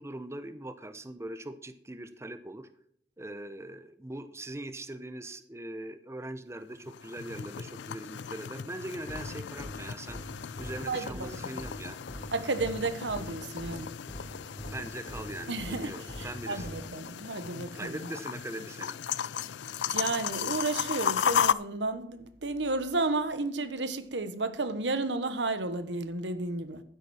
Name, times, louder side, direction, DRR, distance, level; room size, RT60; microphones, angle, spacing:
voice 1, 0.0-2.7 3.2-10.2 10.6-12.0 14.5-16.7 17.7-19.0, right 1 dB, 15° right, 0.7 m, -41 dB
sound 1, 6.7-21.5, left 8 dB, 75° left, 0.4 m, -35 dB
sound 2, 9.1-16.8, equal, 20° left, 3.5 m, -42 dB
voice 2, 10.9-11.6 12.3-13.9 15.5-18.1 19.4-19.5 19.9-26.8, right 3 dB, 85° right, 1.3 m, -32 dB
12.0 x 10.5 x 4.4 m
head